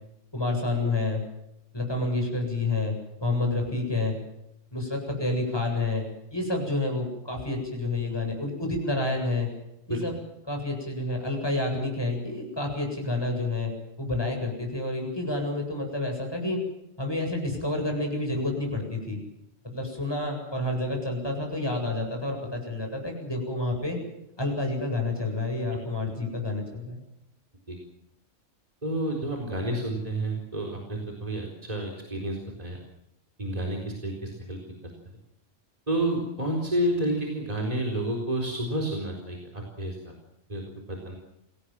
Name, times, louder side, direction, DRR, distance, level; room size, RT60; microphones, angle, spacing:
voice 1, 0.3-1.2 1.7-2.9 3.2-4.2 4.7-6.0 6.3-9.5 9.9-10.2 10.5-13.7 14.0-16.6 17.0-19.2 19.6-24.0 24.4-27.0, left 2 dB, 20° left, 2 dB, 8.0 m, -29 dB
voice 2, 28.8-32.8 33.4-34.6 35.9-40.1 40.5-40.6 40.9-41.2, right 1 dB, 30° right, 1 dB, 4.2 m, -30 dB
27.5 x 18.5 x 7.5 m, 0.85 s
omnidirectional pair, 1.3 m